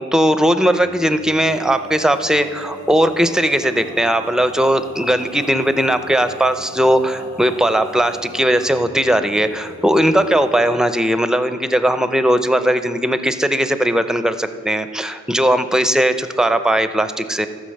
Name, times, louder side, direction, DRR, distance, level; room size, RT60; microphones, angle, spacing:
voice 1, 0.0-17.5, right 1 dB, ahead, 10 dB, 0.6 m, -18 dB
Male singing, 0.7-10.6, left 1 dB, 60° left, 1.9 m, -38 dB
13.5 x 5.1 x 6.5 m, 2.2 s
wide cardioid pair, 45°, 31 cm